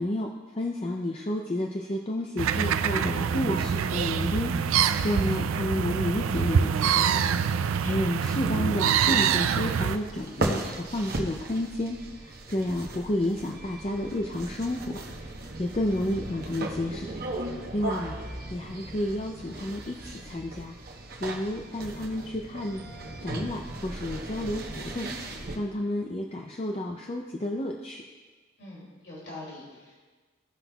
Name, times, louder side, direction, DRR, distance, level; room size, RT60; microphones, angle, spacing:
voice 1, 0.0-7.3 7.6-15.3 15.6-17.2 17.4-18.2 18.5-20.8 21.2-22.8 23.2-28.0, left 1 dB, 30° left, 1 dB, 0.4 m, -31 dB
sound 1, 2.4-10.0, right 7 dB, 85° right, 0.4 m, -25 dB
sound 2, 9.7-25.6, right 2 dB, 50° right, 0.9 m, -37 dB
voice 2, 28.6-30.0, left 2 dB, 55° left, -5 dB, 2.4 m, -44 dB
16.5 x 5.8 x 2.3 m, 1.4 s
head